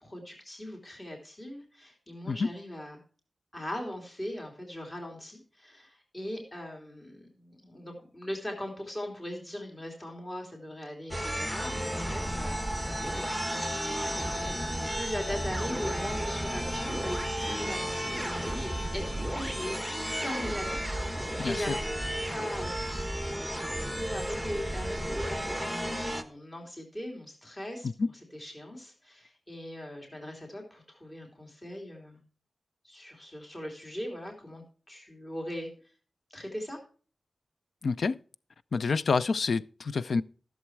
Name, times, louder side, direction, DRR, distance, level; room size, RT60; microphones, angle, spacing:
voice 1, 0.0-3.0 3.5-12.6 14.4-19.8 20.2-20.8 21.4-21.8 22.3-22.7 23.8-27.9 28.3-32.2 32.8-35.7 36.3-36.8, left 1 dB, 25° left, 3.2 m, -40 dB
sound 1, 11.1-26.2, equal, 5° left, 1.2 m, -33 dB
voice 2, 21.4-21.8 28.0-28.1 37.8-38.2 38.7-40.2, left 4 dB, 65° left, 0.4 m, -28 dB
14.0 x 7.3 x 4.6 m
wide cardioid pair, 135°, 0 cm